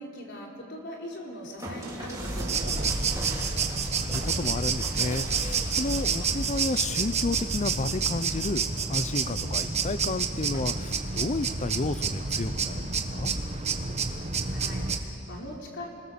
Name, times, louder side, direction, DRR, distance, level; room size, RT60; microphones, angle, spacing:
voice 1, 0.0-3.1 14.5-15.9, equal, 55° left, -1 dB, 4.2 m, -40 dB
sound 1, 1.6-8.6 9.0-9.7 10.5-10.9, right 1 dB, 15° right, 4.6 m, -37 dB
sound 2, 2.4-15.0, right 5 dB, 30° right, 1.4 m, -29 dB
voice 2, 3.8-13.3, left 2 dB, 35° left, 14 dB, 0.6 m, -32 dB
29.5 x 21.0 x 7.1 m, 2.7 s
head